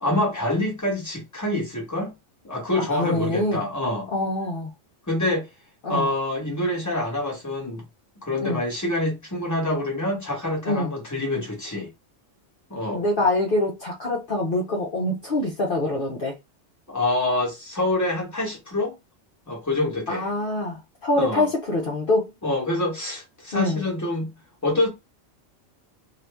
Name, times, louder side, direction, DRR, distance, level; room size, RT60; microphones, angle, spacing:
voice 1, 0.0-2.2 2.4-4.1 5.1-5.5 5.9-7.8 8.2-11.9 12.7-13.0 16.9-18.9 19.5-20.3 21.2-21.5 22.4-24.3 24.6-24.9, left 1 dB, 15° left, 1.2 m, -26 dB
voice 2, 2.9-3.6 4.1-4.7 5.8-6.1 8.4-8.6 10.6-10.9 12.9-16.4 20.1-22.3 23.5-23.8, left 2 dB, 55° left, 0.8 m, -25 dB
2.8 x 2.5 x 3.4 m
omnidirectional pair, 1.2 m